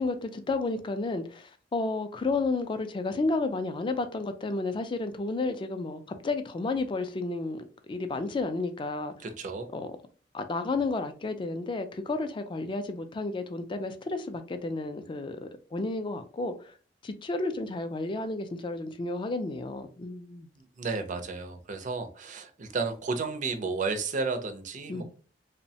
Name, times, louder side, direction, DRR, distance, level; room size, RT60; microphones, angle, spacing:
voice 1, 0.0-9.3 9.7-9.9 10.3-16.7 17.0-20.5 24.9-25.1, left 3 dB, 25° left, 0.3 m, -32 dB
voice 2, 9.2-9.7 20.6-25.1, right 4 dB, 45° right, 0.4 m, -32 dB
3.0 x 2.1 x 2.7 m
head